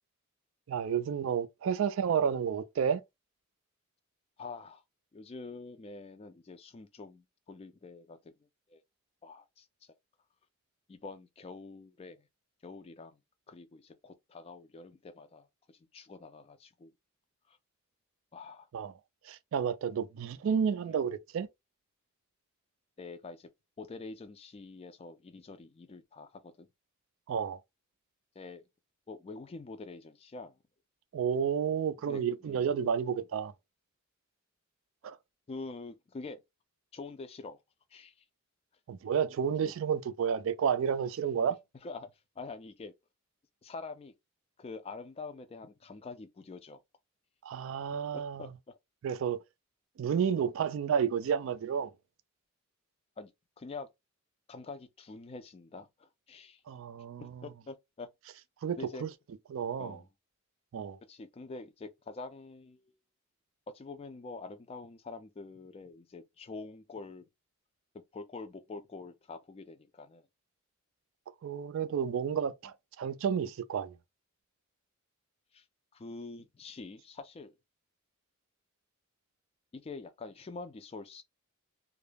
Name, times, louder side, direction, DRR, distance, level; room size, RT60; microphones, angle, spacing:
voice 1, 0.7-3.0 18.7-18.9 19.3-21.5 27.3-27.6 31.1-33.5 35.0-35.2 38.9-41.6 47.4-48.5 49.0-49.4 50.0-51.9 56.7-57.4 58.6-59.1 59.5-60.0 60.7-61.0 71.4-73.9, right 7 dB, 65° right, 0.3 m, -31 dB
voice 2, 4.4-4.8 5.1-8.8 9.2-9.7 10.9-12.3 12.6-13.2 13.5-16.9 17.5-17.6 18.3-18.7 20.4-20.5 20.9-21.0 23.0-23.5 23.8-26.7 28.4-28.7 29.1-30.6 32.0-32.7 35.5-36.4 36.9-37.6 37.9-38.2 39.6-39.7 41.8-42.9 43.6-44.1 44.6-46.8 48.1-48.8 53.2-53.3 53.6-53.9 54.5-56.6 57.2-58.1 58.8-59.0 59.8-60.1 61.1-63.0 63.7-67.3 67.9-70.3 75.5-75.7 75.9-77.6 79.7-81.2, left 3 dB, 30° left, 0.3 m, -46 dB
2.3 x 2.0 x 3.2 m
head